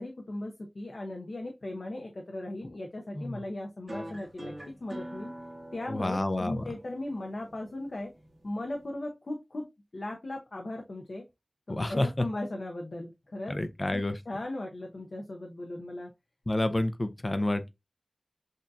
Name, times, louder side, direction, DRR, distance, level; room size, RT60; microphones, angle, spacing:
voice 1, 0.0-4.5 4.8-5.3 5.7-8.1 8.4-9.6 9.9-11.3 11.7-13.6 13.9-16.1, left 1 dB, 75° left, 0.7 m, -37 dB
sound 1, 3.9-8.9, right 1 dB, 40° right, 1.4 m, -45 dB
voice 2, 5.9-6.6 11.7-12.3 13.5-14.1 16.5-17.7, left 1 dB, 40° left, 0.6 m, -29 dB
6.4 x 2.7 x 2.3 m
wide cardioid pair, 40°, 0 cm